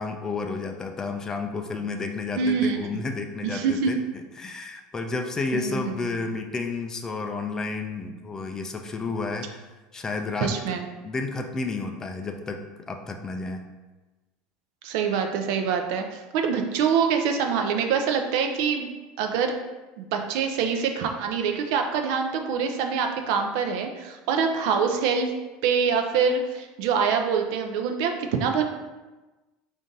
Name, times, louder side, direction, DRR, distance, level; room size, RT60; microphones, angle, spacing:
voice 1, 0.0-9.6 9.9-10.6 11.0-13.7, left 3 dB, 20° left, 5 dB, 0.3 m, -31 dB
voice 2, 2.4-2.8 3.4-3.9 5.5-5.8 10.4-10.9 14.8-18.9 19.2-19.5 20.0-25.3 25.6-28.6, right 6 dB, 70° right, 4 dB, 0.5 m, -25 dB
3.7 x 2.6 x 3.9 m, 1.1 s
supercardioid pair, 140°, 3 cm